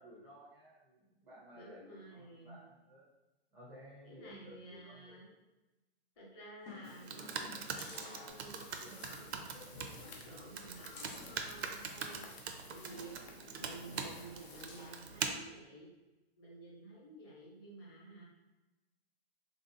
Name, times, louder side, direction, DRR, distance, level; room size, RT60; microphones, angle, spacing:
voice 1, 0.0-3.1 3.5-5.3, equal, 5° right, -8 dB, 0.4 m, -55 dB
voice 2, 1.5-2.6 4.0-5.2 6.2-12.4 12.6-13.1 13.5-15.9 16.4-18.2, right 2 dB, 25° left, -5 dB, 0.7 m, -52 dB
sound 1, 6.6-8.8 9.2-9.4 9.7-12.3 12.9-15.1 15.6-15.7, left 3 dB, 60° left, 0.8 m, -54 dB
Computer keyboard, 6.8-15.3, right 6 dB, 90° right, 0.5 m, -43 dB
sound 2, 8.3-15.4, left 4 dB, 85° left, 0.7 m, -56 dB
3.3 x 2.7 x 2.5 m, 1.1 s
hypercardioid pair, 150°, 32 cm